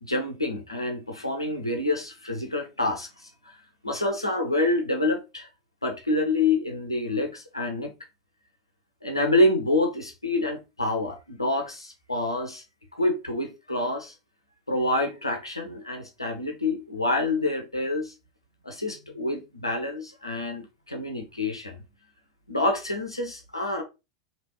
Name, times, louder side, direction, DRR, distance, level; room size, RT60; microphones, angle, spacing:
voice 1, 0.0-3.3 3.8-5.5 5.8-7.9 9.0-12.6 12.9-14.1 14.7-18.1 18.6-21.8 22.5-23.8, left 2 dB, 85° left, 0.7 m, -27 dB
3.3 x 2.8 x 2.9 m
figure-of-eight pair, 90°, 2 cm